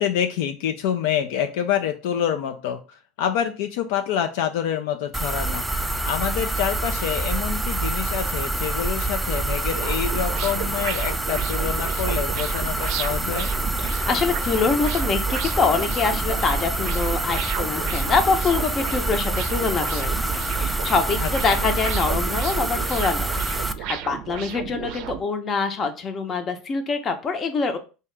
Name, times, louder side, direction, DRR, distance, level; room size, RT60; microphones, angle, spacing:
voice 1, 0.0-5.6 6.0-13.5 21.2-21.7, left 9 dB, 80° left, 6 dB, 0.4 m, -27 dB
sound 1, 5.1-23.7, right 2 dB, 5° right, 0.3 m, -26 dB
sound 2, 9.7-25.2, right 10 dB, 65° right, 0.4 m, -34 dB
voice 2, 13.8-23.3 23.8-27.8, left 4 dB, 35° left, 7 dB, 0.7 m, -25 dB
3.5 x 2.8 x 3.2 m, 0.32 s
supercardioid pair, 115°, 0 cm